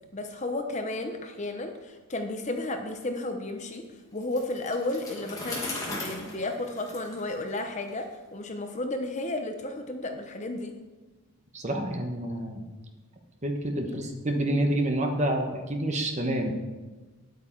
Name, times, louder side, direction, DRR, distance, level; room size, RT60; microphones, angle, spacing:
voice 1, 0.1-3.8 4.1-10.7, left 2 dB, 30° left, 5 dB, 0.7 m, -33 dB
Bicycle, 4.2-8.0, left 2 dB, 15° left, 1.9 m, -38 dB
voice 2, 11.5-12.6 13.4-16.5, right 1 dB, 30° right, 3 dB, 1.1 m, -28 dB
9.9 x 8.2 x 4.5 m, 1.2 s
head